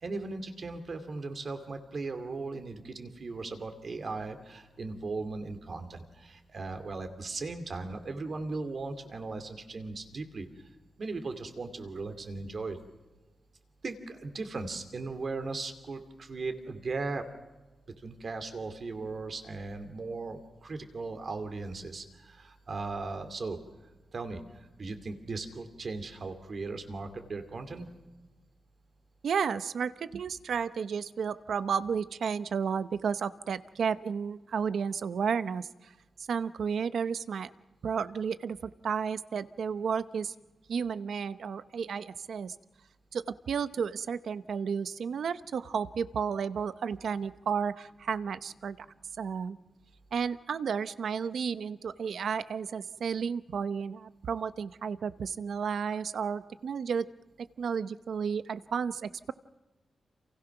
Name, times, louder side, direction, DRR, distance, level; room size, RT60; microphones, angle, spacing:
voice 1, 0.0-10.5 11.0-12.8 13.8-17.3 18.0-23.6 24.1-27.9, right 3 dB, 40° right, 8 dB, 2.5 m, -38 dB
voice 2, 29.2-35.9 36.3-37.5 37.8-40.3 40.7-42.6 43.1-48.9 49.2-49.6 50.1-57.1 57.4-59.3, right 6 dB, 65° right, 13 dB, 0.8 m, -32 dB
30.0 x 28.0 x 6.0 m, 1.2 s
wide cardioid pair, 175°, 0 cm